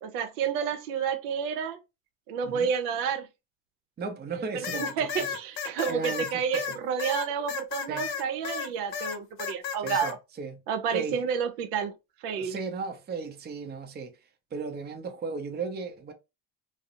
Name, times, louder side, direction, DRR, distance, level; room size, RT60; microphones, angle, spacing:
voice 1, 0.0-1.8 2.3-3.3 4.3-10.2 10.7-11.9 12.2-12.6, right 7 dB, 85° right, 0.6 m, -30 dB
voice 2, 4.0-5.4 5.9-6.7 7.9-8.1 9.8-10.1 10.4-10.6 10.9-11.2 12.4-14.1 14.5-16.1, right 4 dB, 20° right, 0.5 m, -36 dB
sound 1, 4.6-8.7 8.9-10.1, left 7 dB, 60° left, 0.7 m, -33 dB
2.3 x 2.0 x 2.8 m
supercardioid pair, 80°, 48 cm